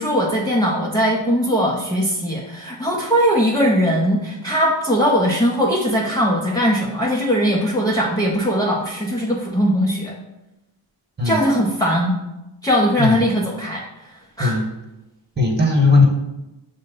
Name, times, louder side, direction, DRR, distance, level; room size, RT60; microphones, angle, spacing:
voice 1, 0.0-10.1 11.2-12.2 12.6-14.6, equal, 10° left, -4 dB, 0.6 m, -20 dB
voice 2, 15.4-16.0, left 3 dB, 20° right, 0 dB, 1.3 m, -17 dB
6.2 x 2.2 x 3.9 m, 0.98 s
cardioid pair, 80°, 48 cm